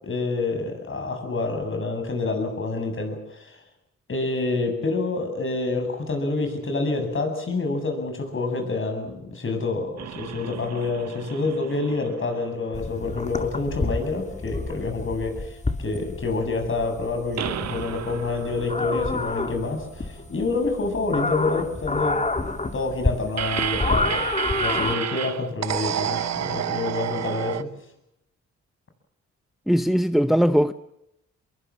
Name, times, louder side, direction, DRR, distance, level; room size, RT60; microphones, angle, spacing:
voice 1, 0.0-3.6 4.1-22.3 22.7-24.3 24.6-27.7, left 3 dB, 45° left, 8.0 m, -27 dB
sound 1, 10.0-13.5 13.8-13.9 17.4-20.5 23.4-27.6, right 9 dB, 65° right, 1.1 m, -31 dB
sound 2, 12.7-24.9, left 3 dB, 25° left, 2.4 m, -29 dB
voice 2, 29.7-30.7, equal, ahead, 0.8 m, -19 dB
24.5 x 22.5 x 7.3 m
cardioid pair, 80°, 29 cm